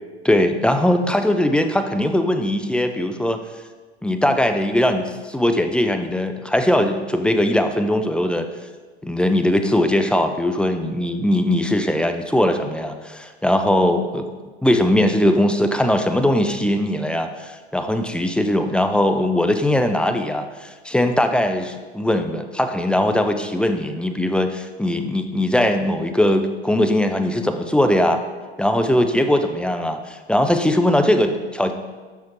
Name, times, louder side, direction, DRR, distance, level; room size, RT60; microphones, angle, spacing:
voice 1, 0.2-3.4 4.0-8.5 9.0-14.3 14.6-28.2 28.6-31.7, left 1 dB, 5° left, 7 dB, 0.4 m, -20 dB
7.6 x 5.8 x 4.2 m, 1.4 s
hypercardioid pair, 90°, 34 cm